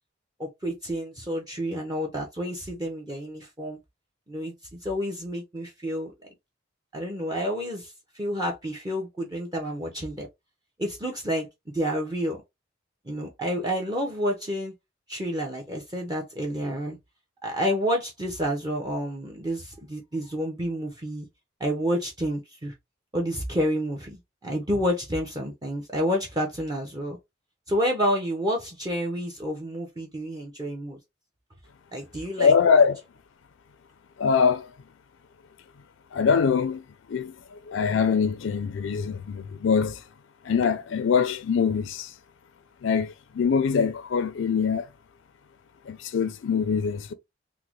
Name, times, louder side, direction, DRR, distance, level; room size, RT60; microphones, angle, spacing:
voice 1, 0.4-3.8 4.3-6.1 6.9-10.3 10.8-11.5 11.7-12.4 13.1-14.7 15.1-17.0 17.4-21.3 21.6-22.7 23.1-27.2 27.7-31.0 31.9-32.8, equal, 20° right, 0.6 m, -29 dB
voice 2, 32.4-33.0 34.2-34.7 36.1-36.8 37.1-40.0 40.4-42.1 42.8-44.9 45.9-47.1, left 6 dB, 80° left, 0.4 m, -23 dB
3.7 x 2.1 x 2.9 m
head